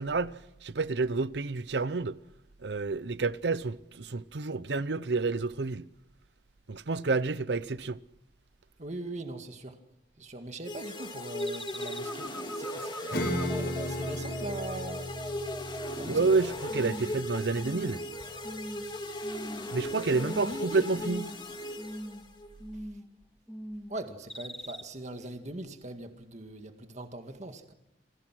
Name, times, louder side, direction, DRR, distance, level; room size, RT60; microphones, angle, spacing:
voice 1, 0.0-2.2 2.6-5.9 6.7-8.0 16.1-18.0 19.7-21.3, right 3 dB, 75° right, 0.7 m, -29 dB
voice 2, 8.8-9.8 10.2-15.0 15.9-16.3 20.4-20.9 23.9-27.7, right 1 dB, 40° right, 1.9 m, -41 dB
sound 1, 10.6-22.5, left 1 dB, 25° left, 2.5 m, -38 dB
sound 2, 11.4-16.4 16.7-17.2 17.5-18.1 18.4-18.9 19.2-19.8 20.1-20.6 20.9-21.4 21.8-22.2 22.6-23.1 23.5-23.9 24.3-24.8, equal, ahead, 1.0 m, -41 dB
Acoustic guitar / Strum, 13.1-19.1, equal, 65° left, 6.0 m, -37 dB
29.0 x 20.5 x 6.2 m
head